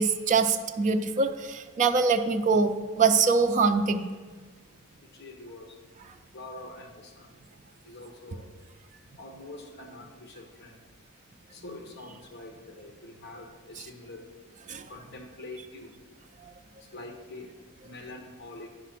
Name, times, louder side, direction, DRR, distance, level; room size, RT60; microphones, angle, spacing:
voice 1, 0.0-4.1 14.7-14.8, right 4 dB, 35° right, 6 dB, 0.4 m, -24 dB
voice 2, 5.1-5.7 6.3-7.3 7.8-8.4 9.2-10.7 11.5-14.2 14.9-15.9 16.9-17.5 17.8-18.7, left 2 dB, 55° left, 3 dB, 1.1 m, -44 dB
10.0 x 4.9 x 5.9 m, 1.4 s
head